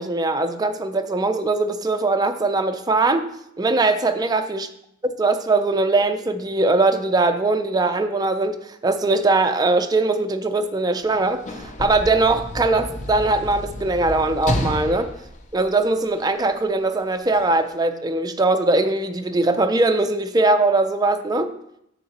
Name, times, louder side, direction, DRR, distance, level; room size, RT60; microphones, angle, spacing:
voice 1, 0.0-3.3 3.6-4.7 5.2-15.1 15.5-21.5, right 2 dB, 20° right, 7 dB, 0.4 m, -21 dB
Sliding door / Slam, 11.0-16.4 17.3-17.4, left 1 dB, 35° left, 0.6 m, -30 dB
7.2 x 6.6 x 2.9 m, 0.77 s
head